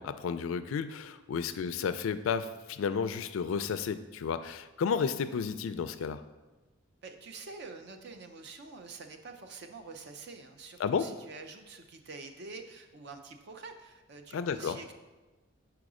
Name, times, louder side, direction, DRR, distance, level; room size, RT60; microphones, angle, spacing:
voice 1, 0.0-6.2 10.8-11.1 14.3-14.8, left 6 dB, 70° left, 11 dB, 0.3 m, -32 dB
voice 2, 7.0-14.9, right 4 dB, 55° right, 6 dB, 0.5 m, -47 dB
5.1 x 4.7 x 4.8 m, 1.1 s
head